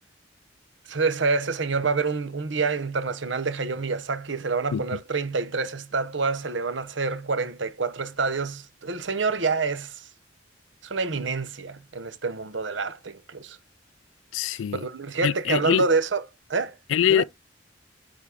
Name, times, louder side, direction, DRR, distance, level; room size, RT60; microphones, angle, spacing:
voice 1, 0.9-10.1 10.8-13.6 14.5-16.2 16.5-16.8 17.1-17.3, right 4 dB, 75° right, 1.0 m, -27 dB
voice 2, 14.3-14.8 15.2-15.8 16.9-17.2, left 9 dB, 85° left, 0.3 m, -23 dB
9.6 x 4.2 x 3.5 m
head